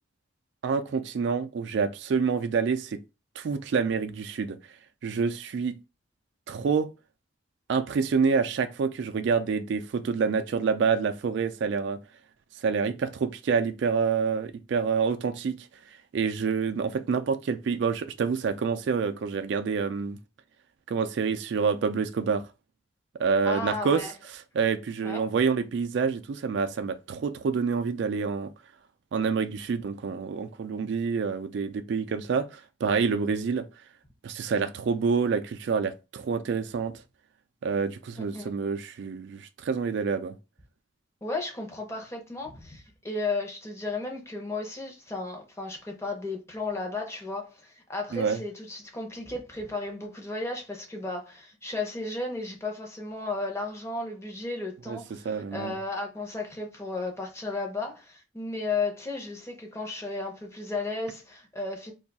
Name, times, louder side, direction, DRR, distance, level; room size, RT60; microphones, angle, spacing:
voice 1, 0.6-3.0 3.4-4.6 5.0-5.8 6.5-6.9 7.7-12.0 12.6-15.7 16.1-20.2 20.9-22.4 23.2-24.0 24.5-28.5 29.1-33.6 34.2-36.9 37.6-40.3 48.1-48.4 54.9-55.0 55.3-55.7, right 5 dB, 60° right, 0.3 m, -27 dB
voice 2, 23.4-24.1 25.0-25.2 38.3-38.5 41.2-61.9, left 3 dB, 15° left, 0.6 m, -34 dB
2.6 x 2.3 x 4.0 m
head